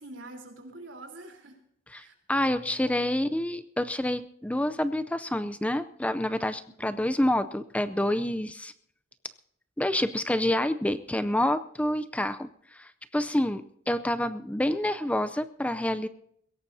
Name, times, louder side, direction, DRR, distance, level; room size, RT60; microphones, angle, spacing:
voice 1, 0.0-1.6 1.9-2.5 2.8-3.0 6.8-7.0, right 2 dB, 75° right, 3 dB, 3.7 m, -46 dB
voice 2, 1.9-8.7 9.8-16.1, left 1 dB, 5° left, 12 dB, 0.5 m, -28 dB
22.0 x 17.0 x 2.7 m, 0.69 s
head